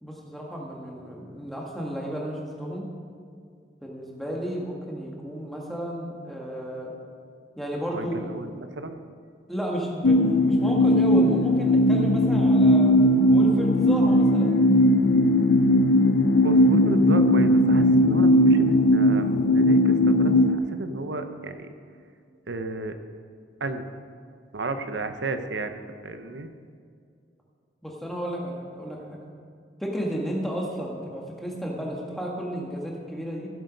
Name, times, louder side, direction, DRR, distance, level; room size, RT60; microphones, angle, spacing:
voice 1, 0.0-2.9 3.8-6.9 7.6-8.3 9.5-12.9 13.3-14.5 27.8-29.0 29.8-33.5, equal, ahead, -3 dB, 1.7 m, -32 dB
voice 2, 7.9-9.0 16.4-21.7 22.5-22.9 23.6-23.9 24.5-26.5, right 2 dB, 90° right, 8 dB, 0.8 m, -33 dB
sound 1, 10.0-20.6, left 1 dB, 90° left, 0.6 m, -18 dB
15.5 x 7.9 x 5.3 m, 2.2 s
head